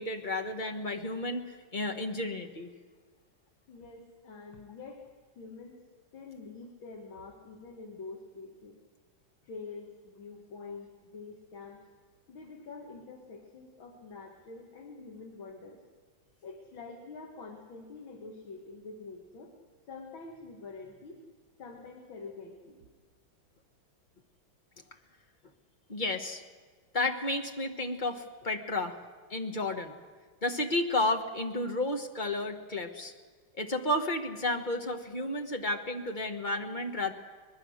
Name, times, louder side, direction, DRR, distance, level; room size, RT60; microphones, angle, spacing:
voice 1, 0.0-2.7 25.9-26.4 26.9-29.0 29.3-30.0 30.4-33.1 33.6-37.1, left 2 dB, 25° left, 4 dB, 1.3 m, -32 dB
voice 2, 3.7-5.0 5.4-5.8 6.1-8.8 9.4-11.8 12.3-15.8 16.4-19.5 19.9-21.2 21.6-22.8, left 4 dB, 80° left, 1 dB, 2.7 m, -46 dB
24.0 x 20.5 x 6.5 m, 1.5 s
omnidirectional pair, 2.1 m